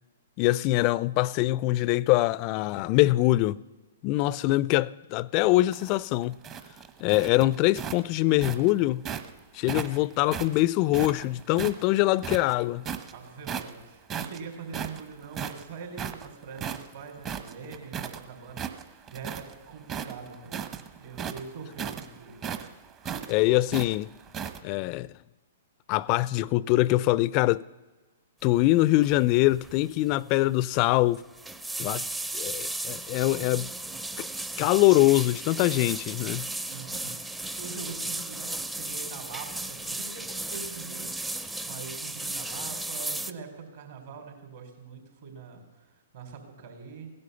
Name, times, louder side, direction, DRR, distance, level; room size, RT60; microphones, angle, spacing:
voice 1, 0.4-3.6 4.0-6.4 7.0-9.0 9.5-12.8 23.3-24.1 24.6-25.1 25.9-27.6 28.4-31.2 31.8-32.0 32.3-33.7 34.2-34.3 34.6-36.5, left 18 dB, 40° left, 0.4 m, -23 dB
sound 1, 5.5-9.3 9.7-11.8 12.2-13.1 13.4-13.8 14.1-18.2 18.5-19.5 19.8-24.6, right 8 dB, 30° right, 1.0 m, -36 dB
voice 2, 13.1-20.6 20.9-22.4 31.7-32.1 36.7-47.1, right 5 dB, 60° right, 4.1 m, -43 dB
sound 2, 29.0-29.3 29.5-29.8 30.1-30.2 31.1-43.3, right 2 dB, 10° right, 0.6 m, -35 dB
17.0 x 11.0 x 6.9 m
hypercardioid pair, 120°, 0 cm